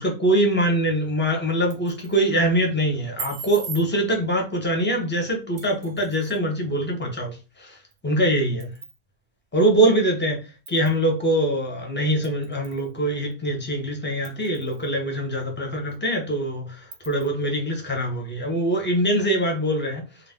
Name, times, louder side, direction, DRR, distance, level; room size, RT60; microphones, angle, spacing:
voice 1, 0.0-7.8 8.0-8.7 9.5-10.4 10.7-20.0, right 1 dB, 15° left, 0.5 m, -23 dB
sound 1, 1.5-2.2 3.2-3.9 5.6-6.4 7.9-8.0 8.6-9.0 9.6-9.7 10.7-11.0 12.2-12.9 13.3-13.4 14.2-14.9 15.4-15.5 15.9-16.0 16.9-17.3, right 7 dB, 65° right, 0.7 m, -39 dB
2.5 x 2.0 x 3.5 m
omnidirectional pair, 1.2 m